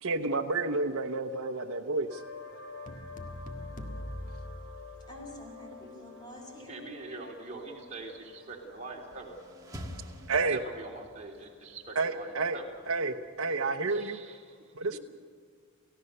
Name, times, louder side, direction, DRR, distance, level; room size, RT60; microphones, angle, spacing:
voice 1, 0.0-2.2 10.3-10.6 12.0-12.6 12.9-14.2 14.8-15.0, right 3 dB, 75° right, 3 dB, 0.9 m, -30 dB
sound 1, 2.1-13.4, left 4 dB, 90° left, 4.9 m, -51 dB
sound 2, 2.9-5.4, left 1 dB, 35° left, 1.6 m, -42 dB
voice 2, 5.1-6.9, equal, 20° left, 1 dB, 4.7 m, -47 dB
voice 3, 6.6-9.4 10.3-12.7 13.9-14.7, right 3 dB, 30° right, -1 dB, 3.2 m, -44 dB
sound 3, 8.9-11.2, equal, 15° right, 1.6 m, -45 dB
29.5 x 15.5 x 6.7 m, 2.1 s
head